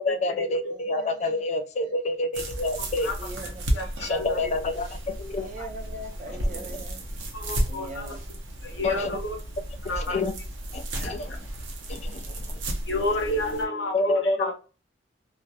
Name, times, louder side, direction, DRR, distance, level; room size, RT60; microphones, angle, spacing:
voice 1, 0.0-3.1 4.0-5.5 8.8-9.1 9.9-10.3 10.7-11.4 11.9-12.3 13.9-14.5, left 2 dB, 40° left, 8 dB, 0.4 m, -28 dB
voice 2, 0.7-1.4 1.8-1.9 3.2-4.6 5.3-7.1 7.7-8.2 8.6-8.8, right 2 dB, 45° right, 5 dB, 0.5 m, -42 dB
sound 1, 2.3-13.6, right 1 dB, 85° right, 0.7 m, -33 dB
voice 3, 3.7-4.4 5.6-5.7 7.3-8.2 8.6-9.4 9.9-10.2 11.0-11.1 12.9-14.5, left 1 dB, 80° left, 2 dB, 0.8 m, -30 dB
2.4 x 2.1 x 2.6 m, 0.36 s
head